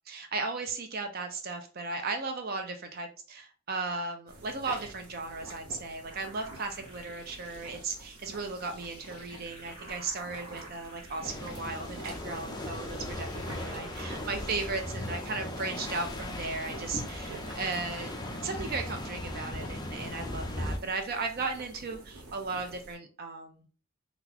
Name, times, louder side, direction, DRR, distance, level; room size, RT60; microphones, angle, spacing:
voice 1, 0.1-18.1 18.4-23.7, right 3 dB, 45° right, 5 dB, 0.4 m, -36 dB
sound 1, 4.3-23.0, right 2 dB, 75° right, 0.9 m, -48 dB
sound 2, 6.1-14.2, right 1 dB, 20° right, 1.5 m, -52 dB
sound 3, 11.2-20.8, left 1 dB, 20° left, 0.4 m, -38 dB
3.8 x 2.4 x 2.8 m, 0.38 s
head